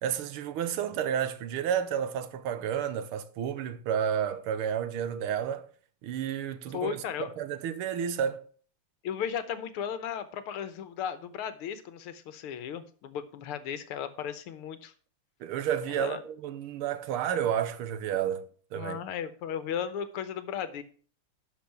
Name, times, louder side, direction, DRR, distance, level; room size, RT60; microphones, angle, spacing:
voice 1, 0.0-5.7 6.0-7.0 7.4-8.4 15.4-19.0, right 9 dB, 80° right, 1.8 m, -31 dB
voice 2, 6.7-7.3 9.0-14.9 15.9-16.2 18.7-20.8, left 8 dB, 90° left, 1.8 m, -35 dB
12.0 x 5.5 x 5.8 m
omnidirectional pair, 2.4 m